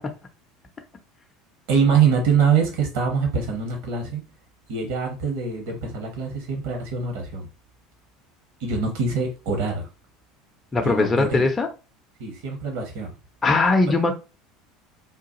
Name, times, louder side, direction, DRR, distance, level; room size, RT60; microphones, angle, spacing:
voice 1, 1.7-4.2 4.7-7.5 8.6-9.9 10.8-11.5 12.2-13.1, right 6 dB, 60° right, 1.1 m, -24 dB
voice 2, 10.7-11.7 13.4-14.1, left 3 dB, 20° left, 0.5 m, -20 dB
3.8 x 2.3 x 2.8 m
figure-of-eight pair, 70°, 0 cm